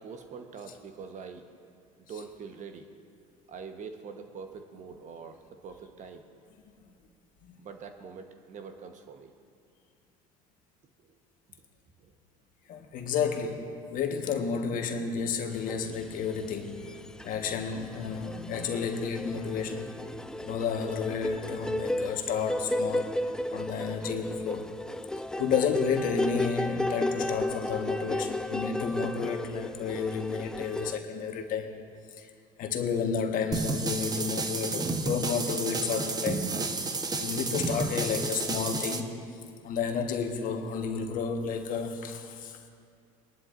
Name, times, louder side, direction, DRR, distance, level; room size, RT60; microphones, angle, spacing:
voice 1, 0.0-1.5 2.0-2.9 3.5-6.3 7.6-9.3 11.0-11.1 12.0-12.1 12.8-12.9 16.9-17.3, right 5 dB, 45° right, 6 dB, 1.2 m, -44 dB
voice 2, 12.7-19.9 20.4-23.2 23.5-24.7 25.4-31.7 32.2-32.3 32.6-36.5 37.2-39.1 39.6-42.7, left 6 dB, 50° left, 4 dB, 1.5 m, -31 dB
sound 1, 15.7-16.5 16.8-31.0, left 1 dB, 5° left, 0.4 m, -34 dB
sound 2, 33.5-39.0, right 3 dB, 20° right, 1.0 m, -31 dB
23.0 x 11.5 x 2.6 m, 2.4 s
hypercardioid pair, 75°, 17 cm